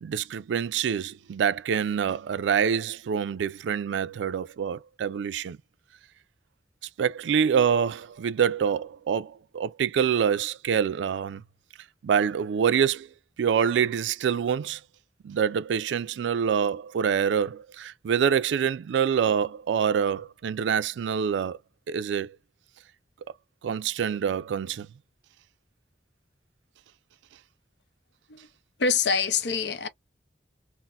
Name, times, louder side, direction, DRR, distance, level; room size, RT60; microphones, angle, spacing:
voice 1, 0.0-5.6 7.0-11.4 12.0-13.1 13.4-14.8 15.2-21.6 21.9-22.4 23.6-24.9, right 7 dB, 85° right, 0.3 m, -26 dB
voice 2, 28.8-29.9, left 5 dB, 70° left, 0.6 m, -25 dB
4.0 x 2.0 x 2.4 m
head